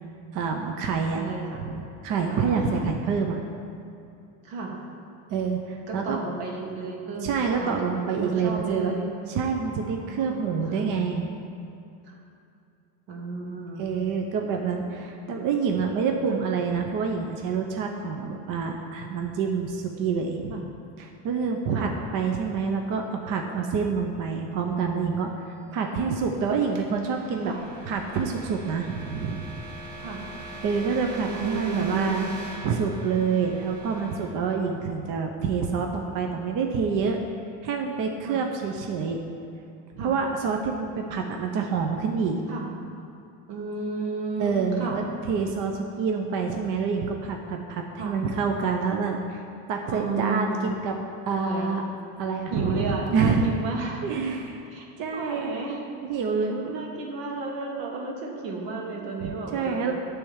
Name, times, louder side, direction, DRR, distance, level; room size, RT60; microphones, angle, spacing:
voice 1, 0.3-1.2 1.5-1.7 2.0-3.4 5.3-6.2 7.2-8.9 9.3-11.3 13.8-20.5 21.0-27.5 27.9-29.5 30.6-32.3 32.6-37.2 37.6-39.2 40.0-42.4 44.4-49.4 49.7-50.9 51.3-51.8 52.2-53.5 54.0-54.7 55.0-56.9 59.0-59.9, right 5 dB, 40° right, 2 dB, 0.7 m, -27 dB
voice 2, 1.2-1.6 2.3-2.9 4.4-4.7 5.9-9.2 9.8-10.9 12.1-12.2 13.1-13.9 14.6-14.8 16.3-16.4 20.5-20.6 21.7-21.9 27.4-27.6 30.0-30.2 31.3-32.1 38.2-38.4 40.0-40.2 42.5-42.7 43.5-45.0 48.0-48.2 49.9-50.7 51.4-51.7 52.5-54.0 54.7-54.9 55.1-55.8 56.7-59.9, right 4 dB, 75° right, -1 dB, 1.8 m, -33 dB
sound 1, 25.7-35.5, right 2 dB, 55° right, 2.0 m, -42 dB
9.9 x 3.5 x 7.1 m, 2.6 s
supercardioid pair, 115°, 49 cm